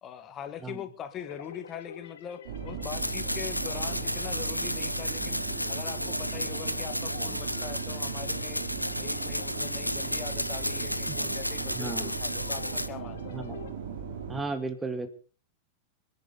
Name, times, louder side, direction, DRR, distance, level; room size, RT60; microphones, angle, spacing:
voice 1, 0.0-5.4 5.7-8.6 9.0-13.4, left 9 dB, 30° left, 9 dB, 2.0 m, -42 dB
sound 1, 1.2-13.7, left 6 dB, 65° left, 2.2 m, -48 dB
sound 2, 2.4-14.4, right 6 dB, 55° right, 4.3 m, -38 dB
sound 3, 2.8-12.9, left 1 dB, 90° left, 0.9 m, -33 dB
voice 2, 11.8-12.1 13.3-13.7 14.3-15.1, right 3 dB, 10° right, 9 dB, 1.8 m, -34 dB
26.0 x 10.5 x 4.2 m, 0.37 s
figure-of-eight pair, 90°, 0 cm